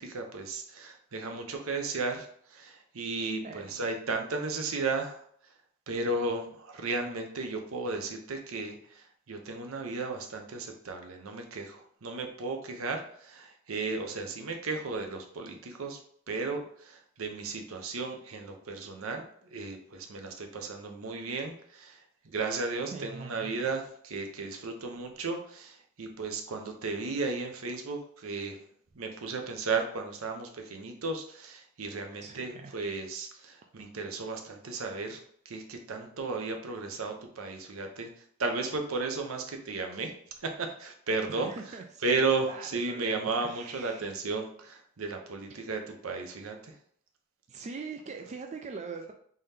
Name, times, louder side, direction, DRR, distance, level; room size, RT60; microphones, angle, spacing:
voice 1, 0.0-5.2 5.9-16.0 16.3-28.6 28.9-38.1 38.4-40.1 40.4-41.5 42.0-46.7, right 3 dB, 70° right, 4 dB, 0.6 m, -34 dB
voice 2, 3.4-3.8 22.9-23.7 32.2-32.8 41.3-44.2 47.5-49.1, right 4 dB, 35° right, 3 dB, 0.3 m, -42 dB
3.7 x 2.7 x 3.3 m, 0.62 s
head